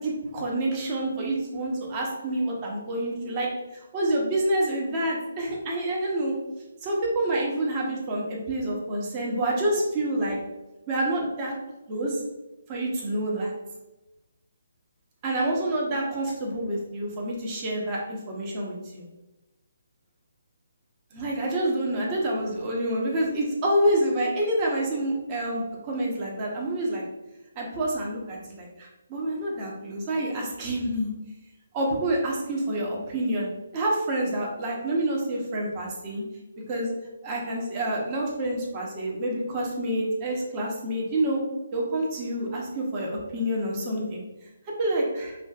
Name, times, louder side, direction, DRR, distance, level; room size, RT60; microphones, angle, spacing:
voice 1, 0.0-6.4 6.8-10.4 10.9-11.5 11.9-12.2 12.7-13.5 15.2-19.0 21.1-27.0 27.6-31.1 31.7-36.2 36.7-36.9 37.2-41.4 41.7-44.2 44.8-45.4, right 1 dB, 30° right, -2 dB, 0.9 m, -28 dB
4.9 x 2.4 x 2.4 m, 1.0 s
hypercardioid pair, 155°, 0 cm